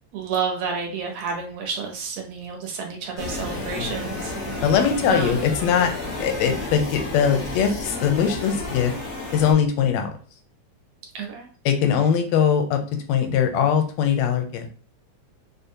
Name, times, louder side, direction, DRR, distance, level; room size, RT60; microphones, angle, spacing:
voice 1, 0.1-4.3 5.1-5.4 11.1-11.5, right 5 dB, 70° right, 2 dB, 1.8 m, -30 dB
sound 1, 3.2-9.5, left 2 dB, 50° left, 0.8 m, -31 dB
voice 2, 4.6-5.9 6.2-8.9 9.3-10.1 11.6-12.8 13.1-14.7, left 7 dB, 80° left, 5 dB, 1.6 m, -21 dB
5.0 x 2.2 x 2.7 m, 0.42 s
omnidirectional pair, 3.3 m